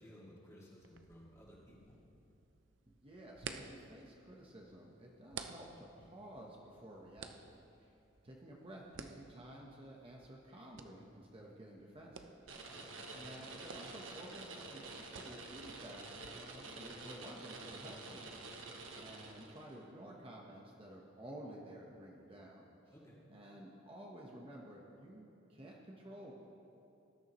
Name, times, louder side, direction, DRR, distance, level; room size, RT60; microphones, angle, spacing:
voice 1, 0.0-2.0 12.7-12.9 22.9-23.2, equal, 15° left, -6 dB, 2.6 m, -57 dB
sound 1, 0.8-16.3, right 5 dB, 65° right, 0.6 m, -54 dB
voice 2, 2.9-7.9 8.2-12.8 13.1-18.4 18.9-22.9 23.3-26.3, right 1 dB, 30° right, -2 dB, 1.2 m, -53 dB
sound 2, 12.5-19.7, right 3 dB, 85° right, 1.4 m, -49 dB
19.5 x 12.5 x 3.1 m, 2.8 s
head